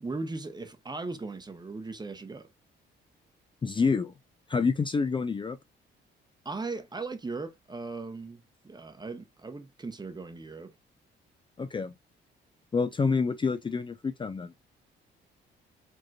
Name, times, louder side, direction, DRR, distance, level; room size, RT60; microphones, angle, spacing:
voice 1, 0.0-2.5 6.4-10.7, right 3 dB, 20° right, 0.9 m, -38 dB
voice 2, 3.6-4.1 4.5-5.6 11.6-11.9 12.7-14.5, left 4 dB, 25° left, 0.5 m, -27 dB
5.1 x 2.9 x 2.3 m
cardioid pair, 90°, 20 cm